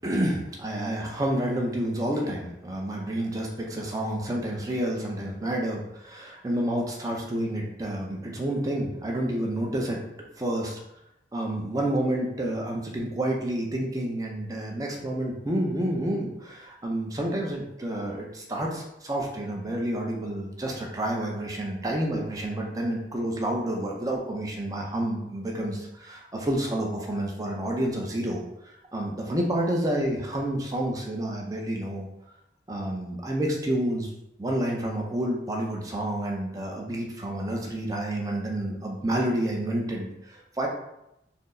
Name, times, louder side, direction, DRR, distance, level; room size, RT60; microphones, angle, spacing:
voice 1, 0.0-10.0 10.4-10.8 11.3-28.4 28.9-32.1 32.7-34.1 34.4-40.7, right 1 dB, 20° right, -1 dB, 0.6 m, -29 dB
4.3 x 2.0 x 3.7 m, 0.84 s
head